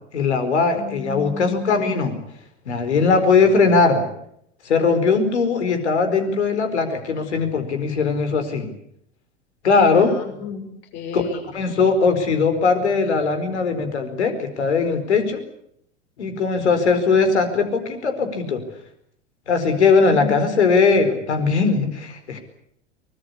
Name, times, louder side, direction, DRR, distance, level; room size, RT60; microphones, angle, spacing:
voice 1, 0.1-2.1 2.6-4.0 4.6-8.7 9.6-10.1 11.1-11.2 11.5-15.4 16.2-18.6 19.5-22.4, left 4 dB, 75° left, 8 dB, 4.7 m, -19 dB
voice 2, 0.7-1.8 9.9-11.5 20.1-20.3, left 5 dB, 50° left, 5 dB, 6.7 m, -33 dB
24.0 x 20.5 x 8.3 m, 0.70 s
figure-of-eight pair, 90°, 34 cm